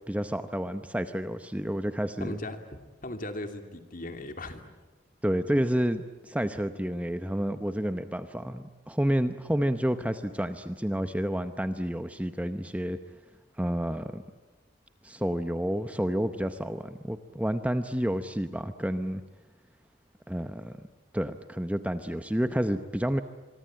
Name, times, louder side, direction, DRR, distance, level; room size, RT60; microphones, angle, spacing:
voice 1, 0.0-2.4 5.2-13.0 13.6-14.2 15.0-19.2 20.3-20.7 21.1-23.2, equal, 5° right, 9 dB, 0.8 m, -30 dB
voice 2, 2.2-2.6 3.0-4.6, left 1 dB, 45° left, 7 dB, 2.6 m, -37 dB
26.0 x 23.5 x 8.8 m, 1.2 s
head